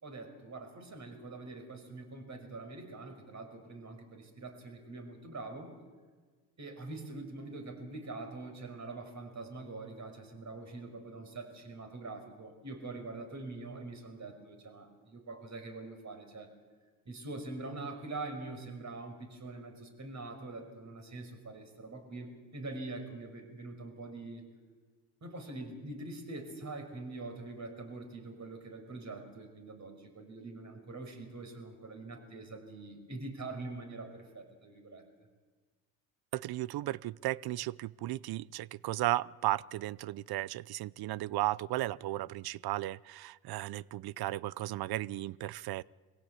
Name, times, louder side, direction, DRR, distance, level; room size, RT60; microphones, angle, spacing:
voice 1, 0.0-5.7 6.6-16.5 17.1-24.4 25.2-35.0, right 2 dB, 35° right, 5.8 m, -44 dB
voice 2, 36.3-45.8, right 16 dB, 50° right, 0.6 m, -35 dB
24.0 x 16.5 x 8.4 m
hypercardioid pair, 70°, 49 cm